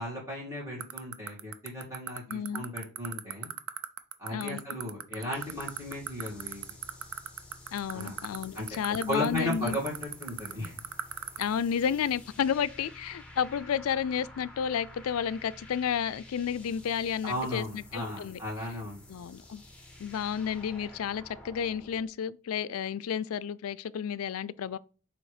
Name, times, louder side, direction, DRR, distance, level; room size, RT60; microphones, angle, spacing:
voice 1, 0.0-3.5 4.2-6.6 7.9-8.2 8.5-8.7 9.1-10.7 17.2-19.0, left 1 dB, 15° right, 2.0 m, -35 dB
sound 1, 0.8-11.4, right 10 dB, 80° right, 0.6 m, -34 dB
voice 2, 2.3-2.7 4.3-4.6 7.7-9.8 11.4-18.4 19.1-19.6 20.0-24.8, left 8 dB, 90° left, 0.4 m, -31 dB
sound 2, 5.3-22.1, left 2 dB, 5° left, 1.3 m, -51 dB
7.0 x 2.9 x 4.9 m
head